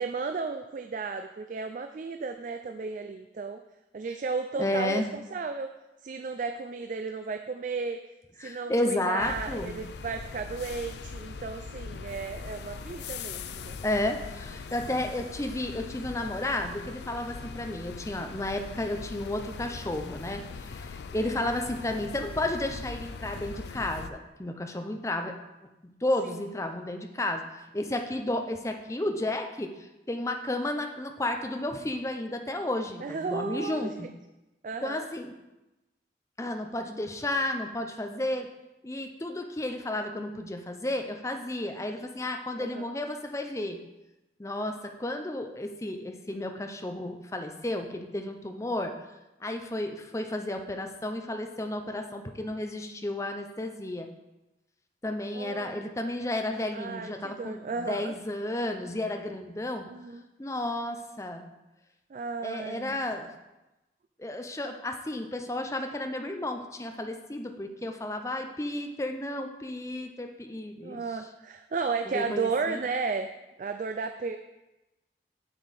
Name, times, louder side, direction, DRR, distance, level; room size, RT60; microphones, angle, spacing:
voice 1, 0.0-3.6 3.9-5.7 6.0-8.0 8.4-13.8 15.2-15.3 21.2-21.3 26.2-26.4 33.0-34.1 34.6-35.0 42.6-42.9 55.3-55.9 56.7-58.1 59.9-60.2 62.1-63.0 70.8-73.3 73.6-74.4, right 4 dB, 45° right, 7 dB, 0.3 m, -34 dB
voice 2, 4.6-5.1 8.4-9.8 13.8-25.3 25.8-27.4 27.7-29.7 30.1-34.1 34.8-35.3 36.4-38.5 38.8-43.8 44.4-48.9 49.4-54.1 55.0-59.9 60.4-61.5 62.4-63.3 64.2-71.0 72.1-72.8, left 1 dB, 15° left, 5 dB, 0.6 m, -32 dB
sound 1, 9.2-24.1, left 5 dB, 70° left, 0.4 m, -41 dB
6.8 x 6.8 x 4.2 m, 1.0 s
head